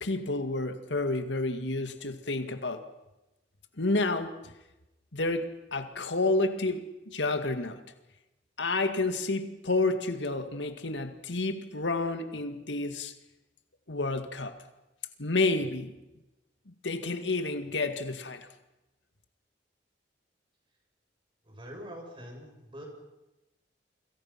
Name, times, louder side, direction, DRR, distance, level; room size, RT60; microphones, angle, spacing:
voice 1, 0.0-2.8 3.8-4.3 5.1-7.8 8.6-13.1 13.9-14.5 15.2-15.9 16.7-18.5, left 2 dB, 90° left, 8 dB, 2.1 m, -30 dB
voice 2, 21.5-22.9, equal, 30° right, 1 dB, 7.5 m, -44 dB
28.5 x 25.5 x 6.0 m, 0.98 s
head